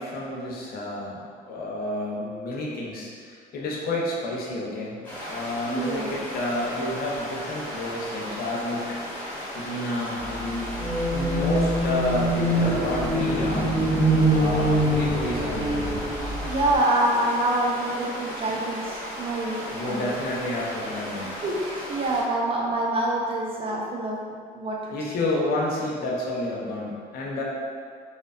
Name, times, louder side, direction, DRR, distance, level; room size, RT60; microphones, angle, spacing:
voice 1, 0.0-5.0 5.2-9.3 9.5-13.7 14.3-16.0 18.4-18.6 19.7-21.3 24.9-27.4, left 1 dB, 65° left, -3 dB, 0.6 m, -30 dB
sound 1, 5.0-22.2, equal, 10° left, 1.0 m, -36 dB
voice 2, 5.7-6.1 7.8-7.9 16.5-20.1 21.4-25.0, right 1 dB, 35° right, -3 dB, 0.4 m, -26 dB
sound 2, 10.8-16.8, right 1 dB, 65° right, 0.9 m, -24 dB
2.7 x 2.2 x 2.4 m, 2.1 s
cardioid pair, 110°, 17 cm